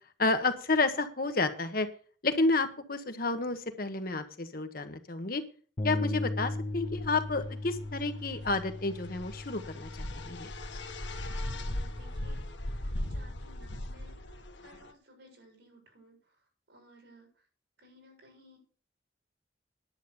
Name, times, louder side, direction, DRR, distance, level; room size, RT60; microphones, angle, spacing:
voice 1, 0.2-1.9 2.2-5.4 5.8-10.5, left 3 dB, 50° left, 8 dB, 1.3 m, -30 dB
Bass guitar, 5.8-12.0, left 2 dB, 30° left, 0.8 m, -38 dB
sound 1, 6.6-14.9, left 1 dB, 80° left, 1.3 m, -39 dB
voice 2, 11.3-17.5 17.8-18.6, equal, 80° right, 2 dB, 7.1 m, -59 dB
10.5 x 8.1 x 7.0 m, 0.41 s
head